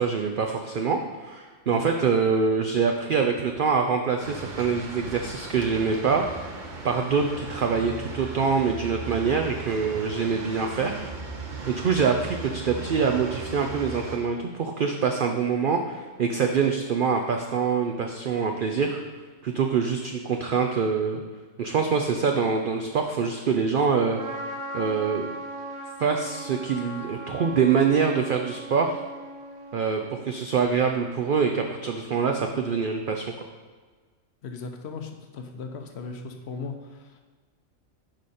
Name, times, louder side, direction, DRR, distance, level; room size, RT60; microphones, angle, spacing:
voice 1, 0.0-6.2 6.8-11.1 11.7-19.0 19.4-21.2 21.6-24.2 24.7-25.3 26.0-29.0 29.7-33.3, right 5 dB, 60° right, 4 dB, 0.6 m, -25 dB
sound 1, 4.2-14.2, right 3 dB, 40° right, 1.0 m, -37 dB
Trumpet, 24.2-30.4, right 1 dB, 80° right, 1.3 m, -38 dB
voice 2, 34.4-37.2, left 4 dB, 55° left, 5 dB, 1.0 m, -37 dB
10.0 x 5.0 x 4.2 m, 1.4 s
omnidirectional pair, 1.4 m